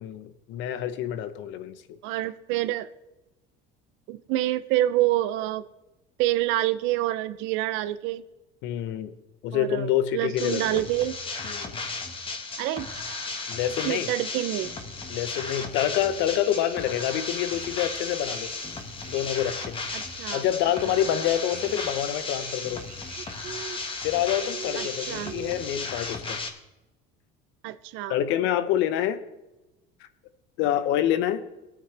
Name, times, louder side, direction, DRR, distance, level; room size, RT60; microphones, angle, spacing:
voice 1, 0.0-2.0 8.6-9.1 9.4-10.8 11.4-11.7 13.5-14.1 15.1-18.5 19.1-19.8 20.3-22.8 24.0-26.4 28.1-29.2 30.6-31.4, left 11 dB, 70° left, 12 dB, 1.0 m, -27 dB
voice 2, 2.0-2.9 4.1-5.6 6.2-8.2 9.5-11.2 12.6-13.0 13.8-14.7 19.9-20.4 24.8-25.3 27.6-28.1, right 15 dB, 75° right, 12 dB, 0.7 m, -27 dB
sound 1, 10.4-26.5, left 3 dB, 25° left, 1.6 m, -35 dB
sound 2, 15.8-26.2, right 7 dB, 45° right, 1.5 m, -46 dB
21.0 x 8.9 x 3.4 m, 1.0 s
cardioid pair, 125°, 20 cm